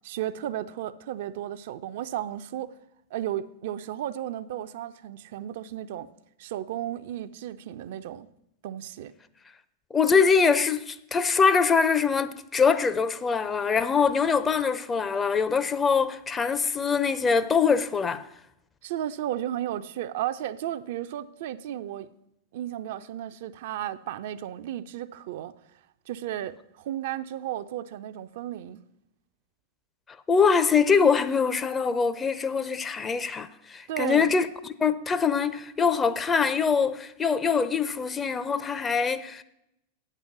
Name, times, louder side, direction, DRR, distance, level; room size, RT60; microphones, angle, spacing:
voice 1, 0.0-2.7 3.1-6.1 6.4-8.3 8.6-9.1 18.8-22.1 22.5-25.6 26.1-28.8 33.9-34.3, right 12 dB, 55° right, 0.3 m, -34 dB
voice 2, 9.9-18.2 30.3-34.5 34.8-39.4, left 5 dB, 20° left, 0.5 m, -23 dB
9.0 x 6.7 x 6.0 m
figure-of-eight pair, 90°, 0 cm